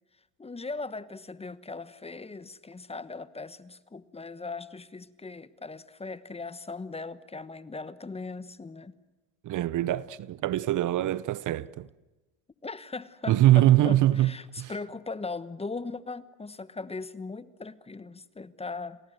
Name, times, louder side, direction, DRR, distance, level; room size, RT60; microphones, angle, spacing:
voice 1, 0.4-9.0 12.6-19.0, left 3 dB, 15° left, 1.1 m, -39 dB
voice 2, 9.4-11.9 13.3-14.3 14.6-14.7, right 14 dB, 50° right, 0.9 m, -23 dB
29.5 x 20.0 x 7.9 m
supercardioid pair, 100°, 39 cm